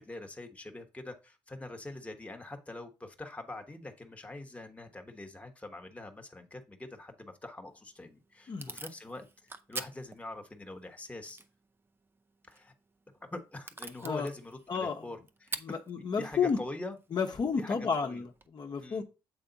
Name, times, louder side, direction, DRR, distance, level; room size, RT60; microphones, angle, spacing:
voice 1, 0.0-11.4 12.5-12.7 13.3-17.0 17.6-18.2 18.8-19.0, left 2 dB, 15° left, 4 dB, 1.1 m, -44 dB
Packing tape duct tape / Tearing, 7.7-18.5, right 3 dB, 25° right, 0.6 m, -48 dB
voice 2, 14.7-15.0 15.6-16.6 17.1-19.0, left 5 dB, 50° left, 4 dB, 1.0 m, -31 dB
8.0 x 3.5 x 3.9 m, 0.30 s
cardioid pair, 70°, 10 cm